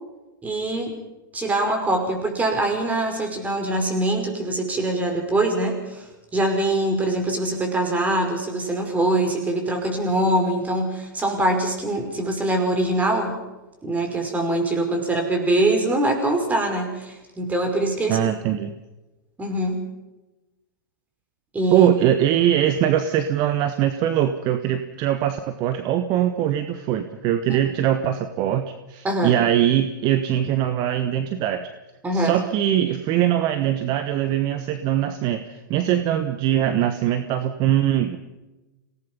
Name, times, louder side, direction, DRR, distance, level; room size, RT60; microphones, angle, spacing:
voice 1, 0.4-0.9 1.3-13.4 13.8-18.2 19.4-19.8 21.5-21.9 27.5-27.6 29.0-29.4 32.0-32.3, right 1 dB, 15° right, 3 dB, 5.5 m, -23 dB
voice 2, 18.1-18.7 21.7-31.7 32.1-38.2, right 11 dB, 40° right, 9 dB, 1.3 m, -22 dB
26.5 x 18.0 x 5.5 m, 1.1 s
hypercardioid pair, 115°, 11 cm